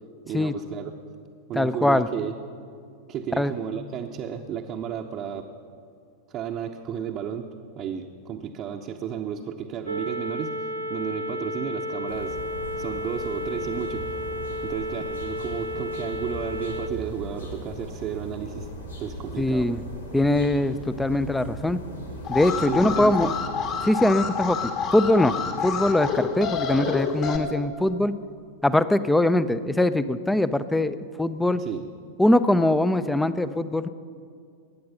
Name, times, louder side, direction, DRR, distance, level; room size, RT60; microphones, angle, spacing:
voice 1, 0.3-0.9 1.5-2.3 3.1-5.5 6.3-7.5 7.7-10.6 10.9-12.4 12.8-14.2 14.6-18.7 19.0-19.7 22.7-23.3 31.5-31.9, right 8 dB, 35° right, 1 dB, 0.8 m, -33 dB
voice 2, 1.5-2.1 3.4-3.5 19.4-19.8 20.1-21.8 22.3-23.3 23.8-25.4 25.6-28.1 28.6-31.6 32.2-33.9, left 1 dB, 5° left, 14 dB, 0.5 m, -22 dB
sound 1, 9.9-16.9, equal, 80° right, 0.7 m, -32 dB
sound 2, 12.1-23.4, equal, 80° left, 2.0 m, -39 dB
Alarm, 22.2-27.4, left 6 dB, 40° left, 1.6 m, -28 dB
20.5 x 9.5 x 5.7 m, 2.3 s
figure-of-eight pair, 90°, 0 cm